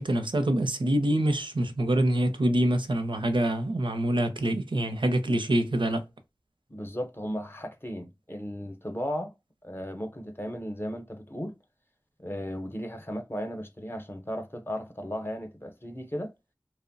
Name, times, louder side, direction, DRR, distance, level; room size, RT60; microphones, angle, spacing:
voice 1, 0.0-6.0, right 1 dB, 85° right, 0.5 m, -25 dB
voice 2, 6.7-9.3 9.6-11.6 12.2-16.3, equal, 30° left, 0.6 m, -35 dB
2.8 x 2.0 x 2.5 m
wide cardioid pair, 45°, 8 cm